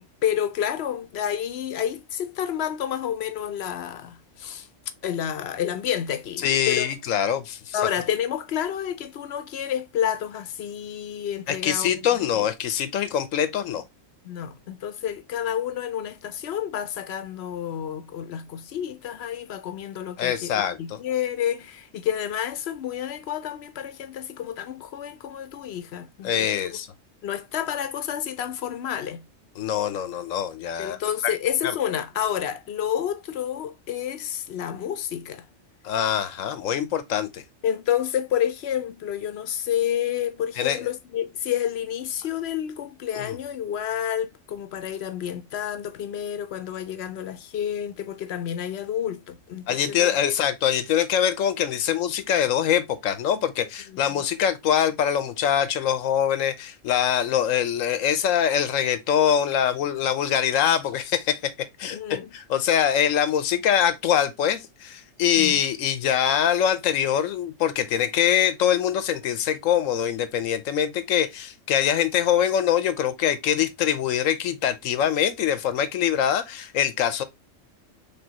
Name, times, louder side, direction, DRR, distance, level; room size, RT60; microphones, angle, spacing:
voice 1, 0.0-4.7 5.0-6.9 7.7-12.5 14.2-26.3 27.2-29.2 30.8-35.5 37.6-50.3 54.2-54.3 61.9-62.3 65.3-65.6, left 10 dB, 60° left, 0.8 m, -29 dB
voice 2, 6.4-7.8 11.5-13.8 20.2-21.0 26.2-26.9 29.6-31.0 31.2-31.3 31.6-31.8 35.8-37.4 40.6-40.8 43.1-43.4 49.7-61.5 61.8-77.2, left 9 dB, 90° left, 1.1 m, -24 dB
5.3 x 3.4 x 2.8 m
omnidirectional pair, 1.3 m